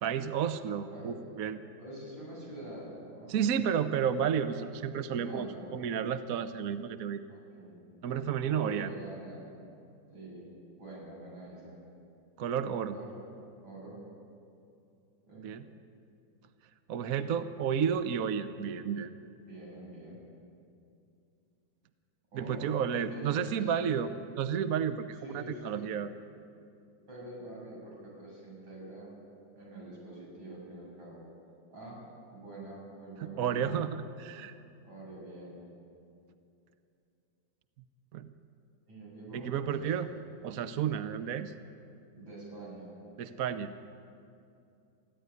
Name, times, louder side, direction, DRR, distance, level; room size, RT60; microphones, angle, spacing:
voice 1, 0.0-1.6 3.3-5.5 5.7-7.2 8.0-8.9 12.4-12.9 15.4-15.6 16.9-19.1 22.3-24.1 24.4-26.1 33.2-34.6 38.1-38.3 39.3-40.1 40.4-41.5 43.2-43.7, right 8 dB, 60° right, 10 dB, 1.0 m, -31 dB
voice 2, 0.9-1.2 1.8-3.4 5.1-5.8 7.3-7.8 8.4-9.5 10.1-10.5 10.7-11.8 12.8-13.1 13.6-14.0 15.3-15.6 18.4-18.8 19.5-20.3 22.3-23.9 25.2-25.9 27.1-29.1 29.6-31.2 31.7-32.0 32.3-33.8 34.8-35.6 38.9-40.1 42.1-42.9, right 1 dB, 80° right, -4 dB, 8.8 m, -45 dB
23.0 x 14.5 x 9.8 m, 2.6 s
omnidirectional pair, 2.2 m